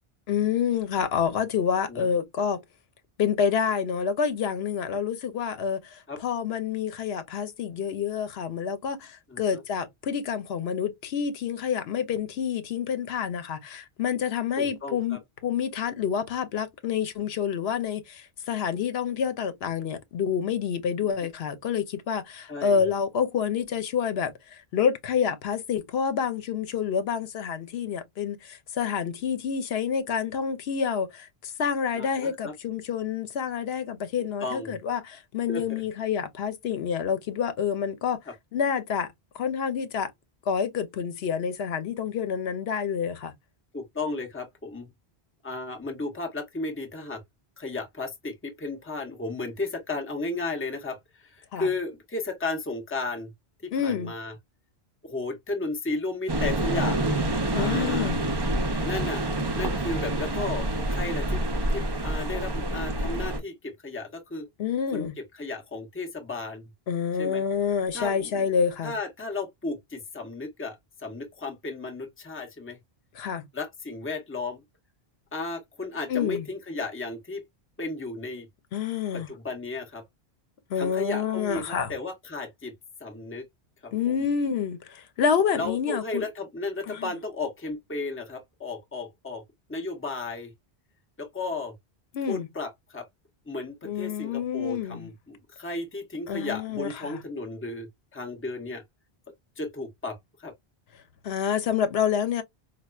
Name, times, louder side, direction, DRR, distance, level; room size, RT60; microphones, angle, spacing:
voice 1, 0.3-2.6 3.2-38.2 38.5-40.1 40.5-43.3 51.5-51.7 53.7-54.1 57.5-58.2 64.6-65.2 66.9-68.9 73.1-73.4 76.1-76.5 78.7-79.3 80.7-81.9 83.9-86.2 86.9-87.1 92.1-92.5 93.8-95.1 96.3-97.2 101.2-102.4, left 7 dB, 80° left, 0.9 m, -28 dB
voice 2, 9.3-9.6 14.6-15.2 22.5-22.8 31.9-32.5 34.4-34.7 35.5-35.6 43.7-44.9 45.4-47.2 47.6-53.3 53.6-54.3 55.0-57.0 57.5-58.1 58.8-59.2 59.5-61.4 61.7-64.5 64.9-65.1 65.3-66.7 67.2-67.4 67.9-68.5 68.8-72.8 73.5-74.6 75.3-77.4 77.8-78.5 79.1-80.0 80.8-82.7 83.0-83.4 83.8-83.9 84.2-84.3 85.5-89.4 89.7-90.5 91.2-91.7 92.3-93.1 93.5-98.8 99.6-100.5, left 3 dB, 15° left, 0.7 m, -34 dB
sound 1, 56.3-63.4, right 1 dB, 30° right, 0.6 m, -27 dB
4.3 x 2.3 x 2.3 m
omnidirectional pair, 1.0 m